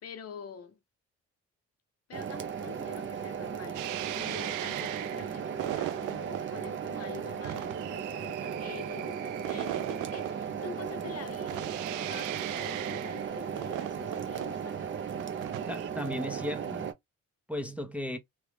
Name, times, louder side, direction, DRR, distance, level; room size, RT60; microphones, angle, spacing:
voice 1, 0.0-0.8 2.1-14.8, left 7 dB, 55° left, 0.9 m, -46 dB
sound 1, 2.1-16.9, right 7 dB, 40° right, 0.7 m, -36 dB
sound 2, 3.7-15.9, right 14 dB, 85° right, 0.5 m, -39 dB
voice 2, 15.7-16.9 17.5-18.2, left 1 dB, 5° right, 0.6 m, -35 dB
3.1 x 2.4 x 3.2 m
cardioid pair, 90°, 30 cm